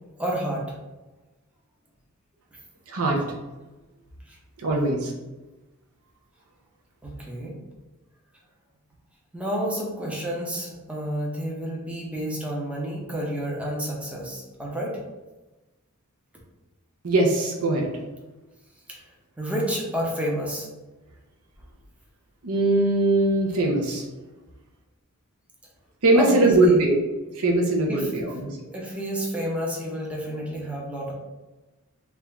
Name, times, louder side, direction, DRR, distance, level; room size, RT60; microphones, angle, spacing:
voice 1, 0.2-0.8 4.3-4.4 7.0-7.5 9.3-15.0 18.9-19.0 19.4-20.7 26.1-26.8 27.9-28.1 28.7-31.1, equal, 5° right, -3 dB, 0.6 m, -30 dB
voice 2, 2.9-3.2 4.6-5.1 17.0-17.9 22.4-24.0 26.0-27.0 27.3-28.5, right 2 dB, 75° right, 0 dB, 0.7 m, -21 dB
3.3 x 2.5 x 3.3 m, 1.1 s
head